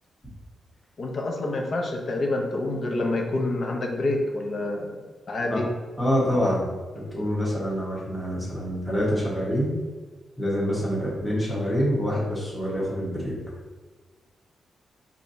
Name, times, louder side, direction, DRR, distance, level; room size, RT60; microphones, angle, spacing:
voice 1, 1.0-5.0 5.3-5.7, left 2 dB, 50° left, 1 dB, 0.7 m, -27 dB
voice 2, 6.0-6.7 7.1-9.7 10.4-13.3, equal, 5° left, -6 dB, 1.3 m, -26 dB
4.9 x 2.7 x 2.7 m, 1.4 s
cardioid pair, 100°, 0 cm